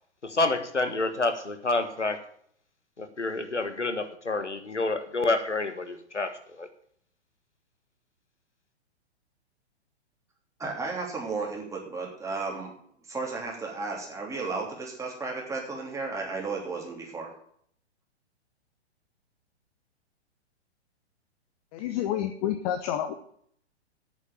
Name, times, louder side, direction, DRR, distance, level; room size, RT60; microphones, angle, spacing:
voice 1, 0.2-2.2 3.0-6.7, left 2 dB, 90° left, 8 dB, 1.5 m, -28 dB
voice 2, 10.6-12.7 13.1-17.3, right 3 dB, 10° right, -1 dB, 3.1 m, -34 dB
voice 3, 21.7-23.1, left 11 dB, 35° left, 7 dB, 1.0 m, -29 dB
8.6 x 7.2 x 8.7 m, 0.63 s
figure-of-eight pair, 115°, 34 cm